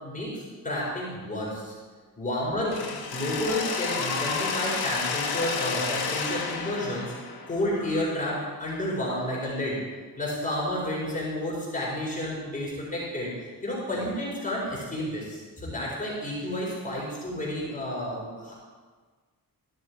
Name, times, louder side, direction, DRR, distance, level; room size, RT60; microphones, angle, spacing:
voice 1, 0.0-1.7 2.2-7.1 7.5-9.8 10.2-18.5, left 1 dB, 20° left, -6 dB, 4.6 m, -31 dB
Mechanisms, 2.7-8.6, left 5 dB, 90° left, 1.7 m, -31 dB
14.5 x 11.5 x 4.7 m, 1.4 s
wide cardioid pair, 165°, 36 cm